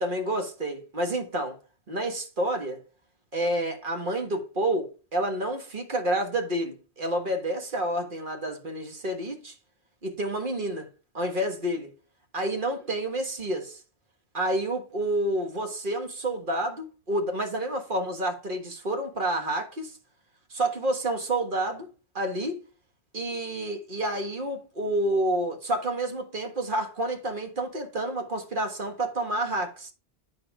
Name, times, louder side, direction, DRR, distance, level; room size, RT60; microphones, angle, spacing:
voice 1, 0.0-1.6 1.9-2.8 3.3-9.5 10.0-10.9 11.1-11.9 12.3-13.8 14.3-19.9 20.5-21.9 22.1-22.6 23.1-29.9, right 1 dB, 55° right, 1.7 m, -29 dB
9.5 x 4.4 x 4.9 m
omnidirectional pair, 1.1 m